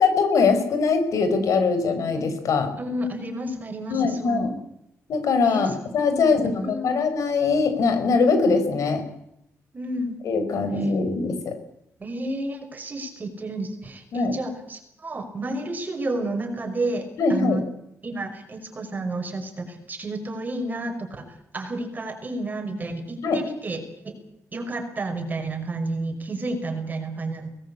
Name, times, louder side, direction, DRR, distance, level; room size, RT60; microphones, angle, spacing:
voice 1, 0.0-2.7 3.9-4.5 5.1-9.0 10.2-11.6 14.1-14.3 17.2-17.6 23.2-23.4, left 4 dB, 80° left, 9 dB, 4.7 m, -22 dB
voice 2, 2.8-4.5 5.4-5.7 6.0-7.0 9.7-10.2 10.8-10.9 12.0-17.6 18.0-24.2 24.5-27.5, right 2 dB, 30° right, 5 dB, 5.6 m, -31 dB
23.5 x 19.5 x 8.5 m, 0.80 s
cardioid pair, 120°, 5 cm